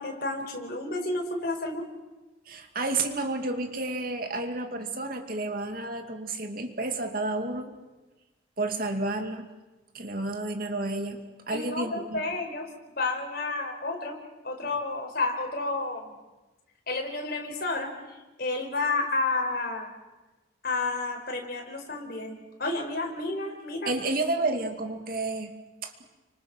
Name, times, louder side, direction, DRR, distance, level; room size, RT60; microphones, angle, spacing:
voice 1, 0.0-1.8 11.5-12.7 13.0-14.2 14.4-16.1 16.9-19.9 20.6-23.9, left 3 dB, 50° left, 2 dB, 5.1 m, -31 dB
voice 2, 2.5-7.7 8.6-9.5 9.9-11.2 11.5-12.4 23.9-25.5 25.8-25.9, right 2 dB, 50° right, 5 dB, 2.6 m, -31 dB
30.0 x 26.0 x 6.4 m, 1.1 s
head